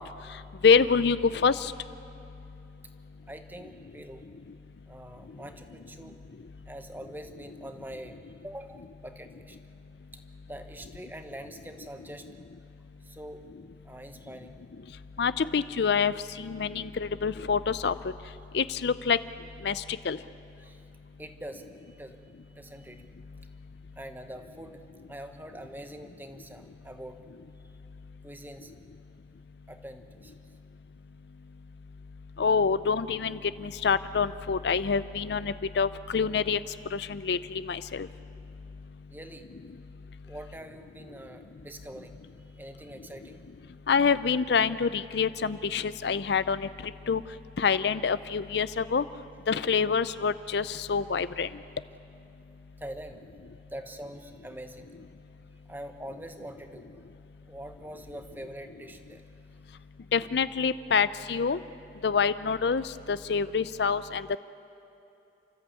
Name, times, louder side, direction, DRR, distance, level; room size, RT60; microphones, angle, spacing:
voice 1, 0.0-1.7 5.3-5.4 15.2-18.1 18.5-19.2 19.6-20.2 32.4-38.1 43.9-47.2 47.6-49.0 49.5-51.6 60.1-61.6 62.0-64.4, left 5 dB, 60° left, 15 dB, 0.5 m, -26 dB
voice 2, 3.3-4.3 4.9-6.2 6.6-9.6 10.1-12.3 13.0-13.4 13.8-14.6 20.6-20.8 21.2-22.2 22.5-23.1 24.0-24.8 25.1-27.2 27.6-27.8 28.2-28.7 29.7-30.3 39.1-39.5 40.3-42.2 42.5-43.4 52.8-53.2 53.6-54.9 55.7-57.0 57.5-59.2, right 1 dB, 10° right, 7 dB, 1.1 m, -44 dB
30.0 x 14.0 x 8.5 m, 2.9 s
head